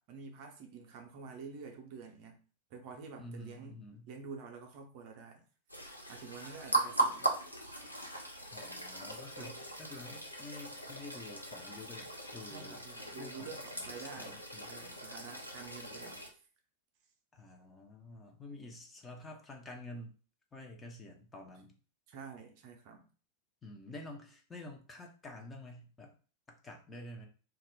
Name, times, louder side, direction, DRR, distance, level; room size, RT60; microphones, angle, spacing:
voice 1, 0.0-2.4 2.7-3.8 4.1-5.4 6.1-7.3 9.4-9.6 12.4-14.4 14.7-16.2 22.1-23.1, right 5 dB, 45° right, 3 dB, 0.5 m, -48 dB
voice 2, 3.2-4.1 8.5-12.8 13.2-13.5 14.0-14.8 17.3-20.1 20.5-21.7 23.6-26.1 26.5-27.3, left 2 dB, 15° left, 2 dB, 0.5 m, -49 dB
sound 1, 5.7-16.3, right 2 dB, 90° left, 0.4 m, -39 dB
2.3 x 2.0 x 3.4 m, 0.38 s
figure-of-eight pair, 90°, 0 cm